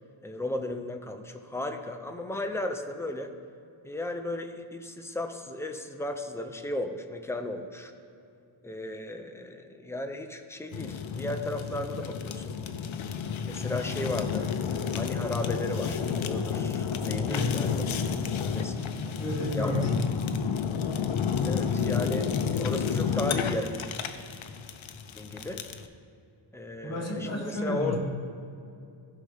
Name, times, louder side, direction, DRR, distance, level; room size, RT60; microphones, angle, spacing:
voice 1, 0.2-3.3 3.8-7.9 8.6-12.6 13.4-17.8 18.4-18.8 19.5-19.8 21.4-23.9 25.2-25.6 26.5-28.0, left 1 dB, 5° left, 5 dB, 0.4 m, -35 dB
Fire, 10.7-25.9, left 6 dB, 70° left, 0.6 m, -30 dB
voice 2, 17.3-17.6 19.2-20.1 26.8-28.0, left 1 dB, 30° left, -3 dB, 1.6 m, -31 dB
15.0 x 5.6 x 3.3 m, 2.6 s
wide cardioid pair, 175°, 49 cm